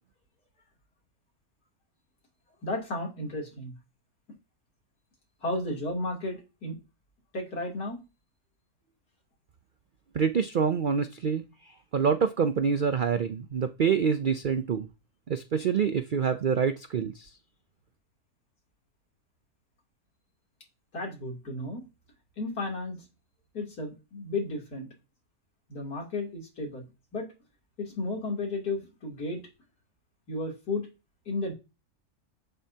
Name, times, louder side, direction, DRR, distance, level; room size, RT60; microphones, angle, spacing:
voice 1, 2.6-3.7 5.4-6.8 7.3-8.0 20.9-21.8 22.4-23.1 23.5-24.9 25.7-26.8 27.1-27.3 27.8-29.4 30.3-30.9 31.3-31.5, left 2 dB, 80° left, 0 dB, 3.6 m, -33 dB
voice 2, 10.1-11.4 11.9-14.9 15.3-17.3, right 6 dB, 75° right, 10 dB, 0.4 m, -26 dB
11.0 x 9.1 x 2.8 m, 0.28 s
omnidirectional pair, 1.6 m